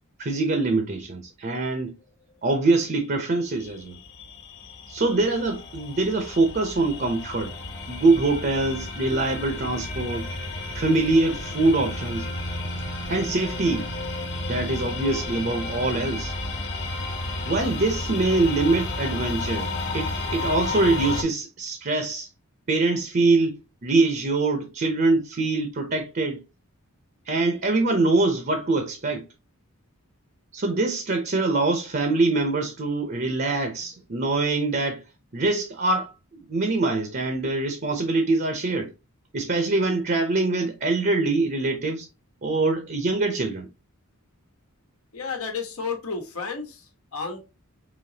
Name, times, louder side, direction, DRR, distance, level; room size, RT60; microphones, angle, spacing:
voice 1, 0.2-1.9 2.4-4.0 4.9-7.5 7.9-10.3 10.7-12.3 13.1-13.9 14.5-16.3 17.5-22.3 22.7-26.4 27.3-29.2 30.5-35.0 35.3-36.1 36.5-38.9 39.3-42.1 42.4-43.7, right 3 dB, 40° right, 0.7 m, -24 dB
sound 1, 3.5-21.2, left 2 dB, 55° left, 1.3 m, -32 dB
voice 2, 45.1-47.4, left 5 dB, 80° left, 1.2 m, -32 dB
5.0 x 3.0 x 2.8 m
head